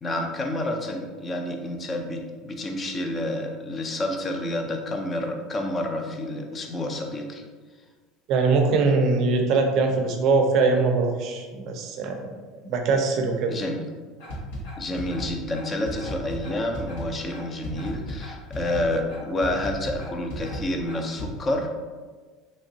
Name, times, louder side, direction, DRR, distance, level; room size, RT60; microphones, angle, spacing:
voice 1, 0.0-7.4 13.5-13.9 14.8-21.7, left 1 dB, 20° left, 3 dB, 0.4 m, -29 dB
voice 2, 8.3-12.2 12.6-13.6, right 4 dB, 45° right, 4 dB, 0.4 m, -22 dB
sound 1, 14.2-21.3, right 1 dB, 80° left, 1.4 m, -35 dB
3.6 x 3.0 x 2.7 m, 1.4 s
cardioid pair, 170°, 0 cm